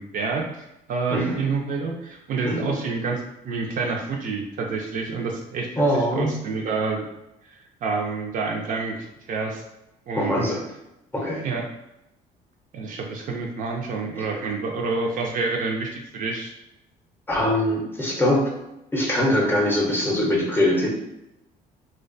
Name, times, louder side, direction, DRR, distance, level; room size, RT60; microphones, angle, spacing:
voice 1, 0.0-7.0 7.8-9.6 10.1-10.5 11.4-11.7 12.7-16.5, right 4 dB, 55° right, 0 dB, 0.4 m, -28 dB
voice 2, 1.1-1.5 2.4-2.8 5.8-6.3 10.1-10.7 11.1-11.5 14.2-14.3 17.3-18.5 18.9-20.9, left 1 dB, 15° left, -2 dB, 0.6 m, -22 dB
2.4 x 2.2 x 2.5 m, 0.89 s
cardioid pair, 110°, 17 cm